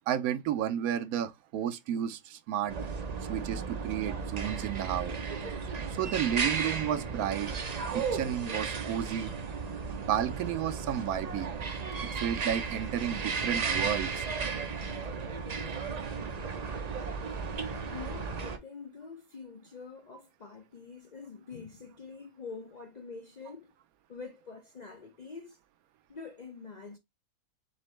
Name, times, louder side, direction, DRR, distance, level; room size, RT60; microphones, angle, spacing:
voice 1, 0.1-2.7 3.3-5.2 5.9-7.5 7.9-9.3 9.9-11.5 12.1-14.3, right 10 dB, 75° right, 1.0 m, -32 dB
sound 1, 2.7-18.6, right 5 dB, 50° right, 0.4 m, -34 dB
voice 2, 15.8-16.3 17.9-23.7 24.1-25.6 26.1-27.0, left 5 dB, 65° left, 0.4 m, -46 dB
4.1 x 3.8 x 3.1 m
omnidirectional pair, 1.6 m